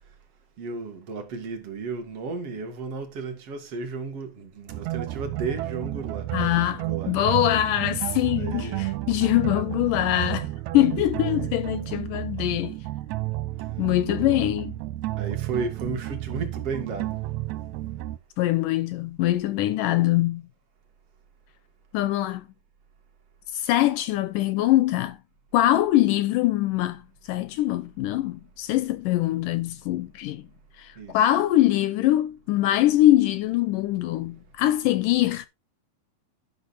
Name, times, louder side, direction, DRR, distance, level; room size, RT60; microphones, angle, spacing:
voice 1, 0.6-6.3 6.6-7.1 8.4-8.9 14.0-14.4 15.2-17.2 31.0-31.2, right 4 dB, 45° right, 2.6 m, -34 dB
sound 1, 4.7-18.2, right 16 dB, 90° right, 1.6 m, -31 dB
voice 2, 6.3-12.8 13.8-14.8 18.4-20.5 21.9-22.5 23.5-25.2 25.5-30.4 30.8-35.5, left 14 dB, 80° left, 2.1 m, -23 dB
12.0 x 6.2 x 4.1 m
omnidirectional pair, 4.1 m